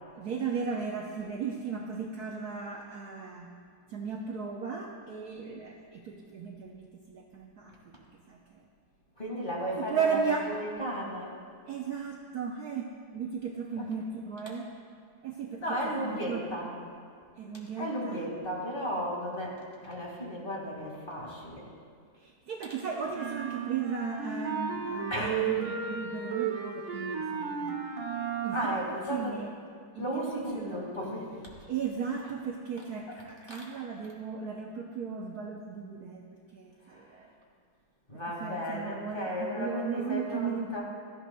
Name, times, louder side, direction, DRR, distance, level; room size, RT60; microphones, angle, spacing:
voice 1, 0.1-3.5 3.9-7.7 8.3-8.6 9.8-10.5 11.7-14.6 15.2-16.5 17.3-18.2 22.2-27.8 28.4-28.8 29.1-29.5 29.9-30.9 31.7-36.2 36.5-37.3 38.3-40.7, right 6 dB, 65° right, 0 dB, 1.1 m, -36 dB
voice 2, 9.2-11.4 13.8-13.9 15.6-16.7 17.8-21.7 25.1-25.4 28.5-29.4 30.0-31.3 33.5-33.8 36.9-37.2 38.1-40.8, equal, 25° left, -3 dB, 2.1 m, -35 dB
sound 1, 23.1-28.9, right 7 dB, 90° right, 1.8 m, -34 dB
17.0 x 13.5 x 2.3 m, 2.2 s
omnidirectional pair, 2.2 m